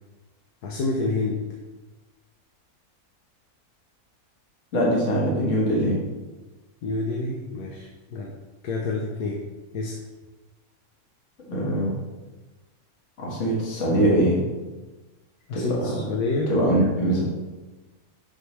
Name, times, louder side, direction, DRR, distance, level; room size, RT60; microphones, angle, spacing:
voice 1, 0.6-1.4 6.8-8.3 8.6-9.4 9.7-9.9 15.5-16.5, left 3 dB, 90° left, 0 dB, 1.3 m, -28 dB
voice 2, 4.7-6.0 11.5-12.0 13.2-14.4 15.5-15.9 16.5-17.2, right 1 dB, 55° left, -4 dB, 1.8 m, -22 dB
6.9 x 6.3 x 3.2 m, 1.2 s
omnidirectional pair, 1.6 m